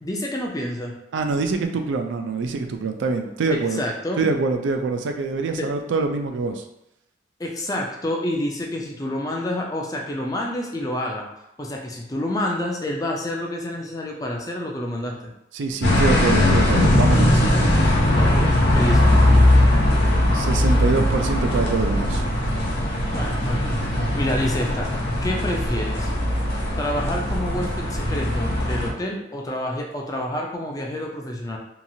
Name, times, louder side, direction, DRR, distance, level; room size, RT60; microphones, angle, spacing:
voice 1, 0.0-0.9 3.5-4.2 5.6-5.7 7.4-11.2 11.6-15.3 18.1-19.2 23.1-24.9 25.2-26.1 26.8-31.6, left 1 dB, 20° left, 0 dB, 0.4 m, -28 dB
voice 2, 1.1-3.8 4.2-6.6 15.5-17.5 20.3-22.2, right 3 dB, 80° right, 5 dB, 0.4 m, -24 dB
sound 1, 15.8-28.9, left 1 dB, 65° left, 0.6 m, -19 dB
2.9 x 2.3 x 2.6 m, 0.85 s
head